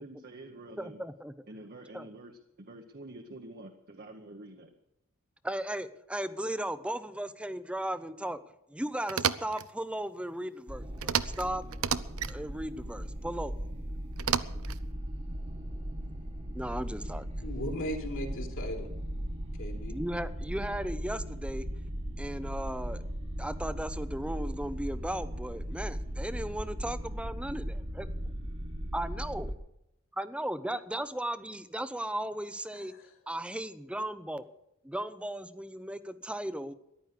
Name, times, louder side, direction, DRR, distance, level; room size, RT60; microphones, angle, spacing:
voice 1, 0.0-1.0 1.5-4.7, right 2 dB, 45° right, 4 dB, 1.1 m, -47 dB
voice 2, 0.8-1.3 1.9-2.1 5.4-8.4 8.7-11.6 12.3-13.5 16.5-17.3 19.9-21.7 22.2-23.0 23.4-28.1 28.9-29.5 30.1-32.9 33.3-34.5 34.8-36.7, right 1 dB, 5° right, 13 dB, 0.7 m, -36 dB
sound 1, 9.1-9.7 11.0-11.5 11.7-12.3 14.2-14.8, right 8 dB, 80° right, 0.7 m, -30 dB
sound 2, 10.7-29.6, equal, 30° right, 1.5 m, -37 dB
voice 3, 17.4-18.9 19.6-20.0 32.7-33.1, equal, 65° left, 1 dB, 3.4 m, -38 dB
14.5 x 11.0 x 6.6 m, 0.84 s
head